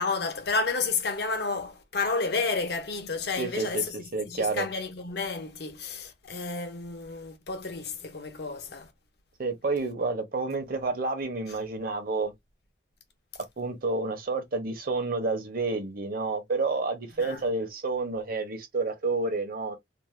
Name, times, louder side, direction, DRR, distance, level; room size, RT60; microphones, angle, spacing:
voice 1, 0.0-4.0 4.2-8.9 11.5-11.6 17.2-17.4, left 4 dB, 65° left, 0.7 m, -31 dB
voice 2, 3.4-3.8 4.1-4.7 9.4-12.3 13.6-19.8, right 3 dB, 55° right, 0.8 m, -29 dB
2.6 x 2.1 x 3.1 m
head